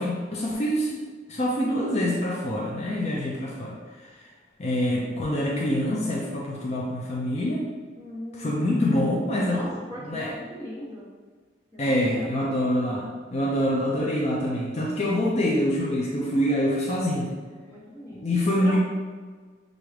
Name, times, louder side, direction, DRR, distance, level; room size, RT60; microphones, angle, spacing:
voice 1, 0.0-4.1 4.6-7.6 8.3-10.3 11.8-17.3 18.1-18.8, equal, 40° left, -3 dB, 0.5 m, -26 dB
voice 2, 8.0-8.6 9.5-11.0 11.7-12.4 17.0-17.3 17.6-18.8, equal, 20° left, -9 dB, 0.9 m, -40 dB
5.9 x 2.6 x 3.2 m, 1.5 s
head